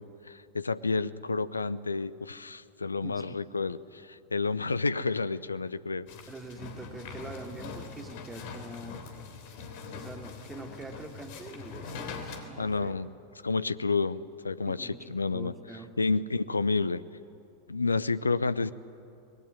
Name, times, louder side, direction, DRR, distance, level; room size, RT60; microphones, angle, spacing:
voice 1, 0.0-6.1 12.6-13.1 13.4-15.5 16.0-17.0 17.7-18.7, left 3 dB, 80° left, 16 dB, 0.7 m, -30 dB
voice 2, 3.0-3.3 6.3-9.0 9.9-13.0 14.7-15.9, right 2 dB, 15° right, 4 dB, 2.6 m, -44 dB
sound 1, 6.1-12.4, left 5 dB, 50° left, 3.3 m, -42 dB
25.0 x 20.0 x 9.7 m, 2.6 s
figure-of-eight pair, 90°, 0 cm